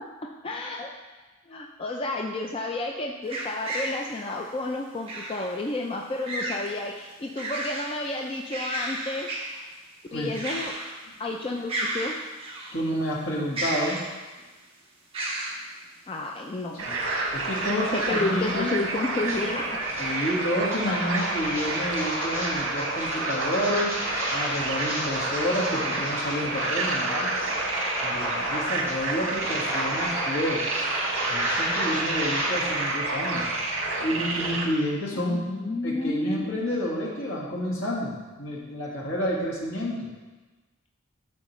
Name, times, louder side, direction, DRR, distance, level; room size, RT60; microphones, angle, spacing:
voice 1, 0.4-0.9 1.5-9.3 10.1-10.7 11.2-12.2 16.1-16.8 17.5-19.8 35.1-36.5, left 2 dB, 25° left, 1 dB, 0.4 m, -31 dB
sound 1, 3.3-4.0 5.1-5.5 6.2-6.7 7.1-7.9 8.3-9.6 10.3-11.0 11.3-11.4 11.7-12.7 13.5-14.4 15.1-15.6 16.9-17.4 17.9-18.4 18.9-19.0 19.6-19.8, right 1 dB, 30° right, 1.2 m, -33 dB
voice 2, 12.7-14.0 16.8-17.0 17.3-18.8 20.0-23.9 24.3-27.3 28.0-30.6 31.2-33.5 34.0-35.4 35.8-40.1, equal, 65° left, -4 dB, 1.7 m, -29 dB
sound 2, 16.8-34.7, right 2 dB, 70° right, 1.2 m, -29 dB
sound 3, 19.2-19.4 19.8-32.8, right 1 dB, 15° right, 2.3 m, -33 dB
12.0 x 4.3 x 3.1 m, 1.2 s
head